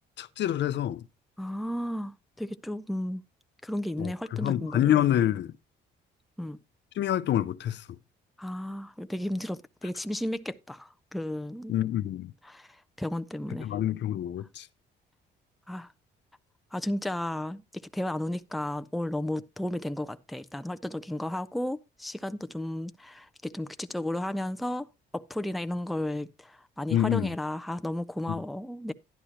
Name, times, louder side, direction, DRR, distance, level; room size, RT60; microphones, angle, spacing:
voice 1, 0.2-1.0 4.0-5.5 7.0-7.8 11.7-12.3 13.6-14.7 26.9-27.3, left 11 dB, 65° left, 0.6 m, -27 dB
voice 2, 1.4-3.2 3.6-5.1 6.4-6.6 8.4-11.7 12.4-13.7 15.7-15.9 16.7-24.9 25.1-28.9, left 1 dB, ahead, 0.4 m, -33 dB
11.5 x 9.9 x 2.9 m
cardioid pair, 90°, 20 cm